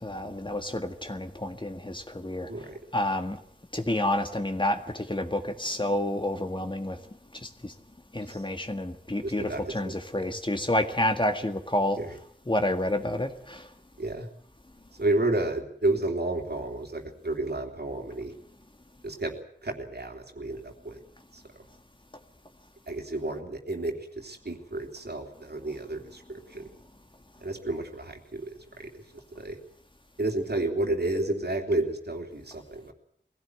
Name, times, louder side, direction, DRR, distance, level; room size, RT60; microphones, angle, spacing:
voice 1, 0.0-2.5 2.9-3.4 3.7-7.0 7.6-7.7 8.1-12.0 12.5-13.6, left 1 dB, 25° left, 1.8 m, -29 dB
voice 2, 9.2-9.7 12.0-12.1 14.0-14.3 15.0-18.3 19.0-19.3 19.6-21.0 22.9-26.7 27.4-28.5 28.8-28.9 29.4-29.6 30.2-32.9, right 2 dB, 60° right, 3.1 m, -31 dB
21.0 x 16.5 x 9.4 m
wide cardioid pair, 60°, 19 cm